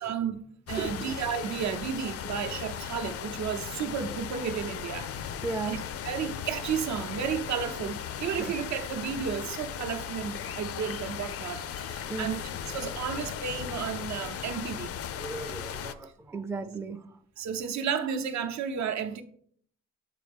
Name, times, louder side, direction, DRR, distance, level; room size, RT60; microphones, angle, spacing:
voice 1, 0.0-0.4 0.7-5.1 5.7-12.4 12.7-15.0 17.4-19.2, right 7 dB, 65° right, 0.7 m, -33 dB
sound 1, 0.7-15.9, left 8 dB, 50° left, 0.5 m, -37 dB
voice 2, 0.8-1.1 5.4-5.8 8.4-8.5 12.1-12.4 15.2-17.2, right 3 dB, 10° right, 0.4 m, -36 dB
7.5 x 4.3 x 3.5 m
cardioid pair, 90°, 30 cm